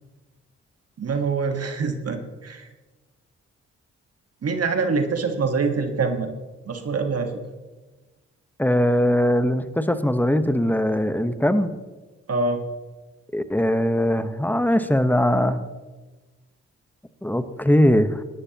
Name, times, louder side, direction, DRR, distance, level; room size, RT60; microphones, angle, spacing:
voice 1, 1.0-2.7 4.4-6.3 6.6-7.3 12.3-12.6, right 4 dB, 55° right, 6 dB, 1.5 m, -25 dB
voice 2, 8.6-11.7 13.3-15.6 17.2-18.2, equal, 5° left, 10 dB, 1.1 m, -20 dB
18.5 x 11.5 x 3.0 m, 1.2 s
supercardioid pair, 45°, 30 cm